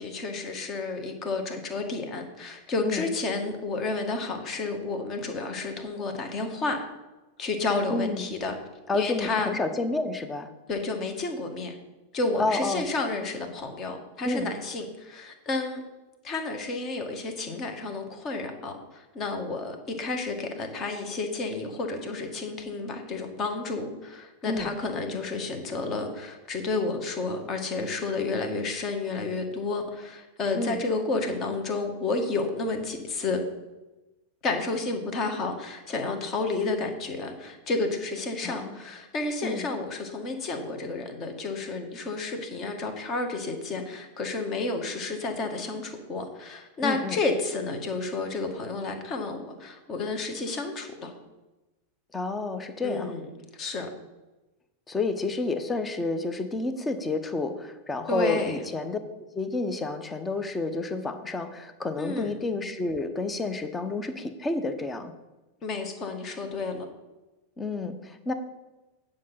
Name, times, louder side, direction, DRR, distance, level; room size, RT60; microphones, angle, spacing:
voice 1, 0.0-6.8 7.4-8.6 8.9-9.5 10.7-11.8 12.1-15.8 16.2-33.4 34.4-51.1 52.8-53.3 53.6-53.9 58.1-58.6 62.0-62.3 65.6-66.8, left 3 dB, 30° left, 5 dB, 1.7 m, -31 dB
voice 2, 7.9-8.2 8.9-10.5 12.4-12.9 14.2-14.5 24.5-24.7 30.5-30.8 38.4-38.8 39.4-39.6 46.8-47.2 52.1-53.2 54.9-59.0 59.3-65.1 67.6-68.3, left 3 dB, 15° left, 9 dB, 0.9 m, -30 dB
9.7 x 5.2 x 5.8 m, 1.1 s
figure-of-eight pair, 90°, 0 cm